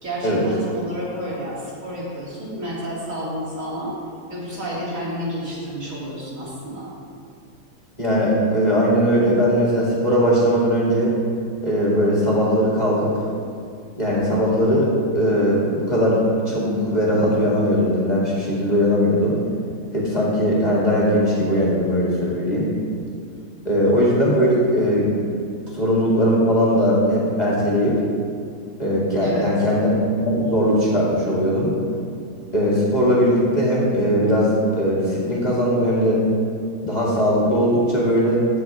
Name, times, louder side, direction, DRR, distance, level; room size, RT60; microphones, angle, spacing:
voice 1, 0.0-4.0 4.3-6.9 29.2-29.7, equal, 55° right, -7 dB, 2.9 m, -30 dB
voice 2, 8.0-11.1 11.6-13.1 14.0-14.9 15.1-19.4 19.9-22.7 23.6-25.4 25.7-28.0 28.8-29.9 30.2-31.7 32.5-36.2 36.8-38.4, equal, 25° left, -6 dB, 2.3 m, -19 dB
15.5 x 6.6 x 3.5 m, 2.3 s
omnidirectional pair, 1.7 m